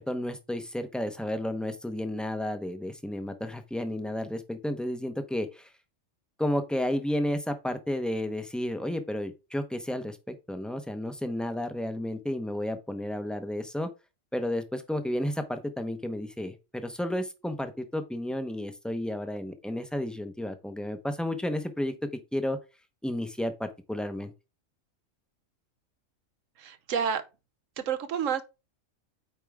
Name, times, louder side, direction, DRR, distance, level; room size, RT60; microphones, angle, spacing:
voice 1, 0.0-5.7 6.4-13.9 14.3-21.9 22.3-22.6 23.0-24.3, left 1 dB, ahead, 0.8 m, -32 dB
voice 2, 26.6-27.2 27.8-28.4, right 7 dB, 75° right, 1.2 m, -29 dB
9.1 x 4.7 x 3.6 m
omnidirectional pair, 1.3 m